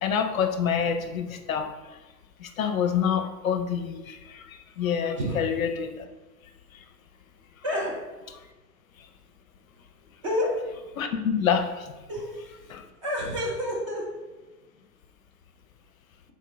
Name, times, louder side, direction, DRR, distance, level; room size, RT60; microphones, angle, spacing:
voice 1, 0.0-2.0 2.4-6.1 6.7-6.8 9.0-9.1 11.0-11.9 12.7-12.8, left 7 dB, 60° left, 7 dB, 0.5 m, -27 dB
voice 2, 10.2-10.6 12.1-12.7 13.0-14.1, equal, 20° right, -4 dB, 0.4 m, -29 dB
3.7 x 3.7 x 3.3 m, 1.2 s
figure-of-eight pair, 105°, 48 cm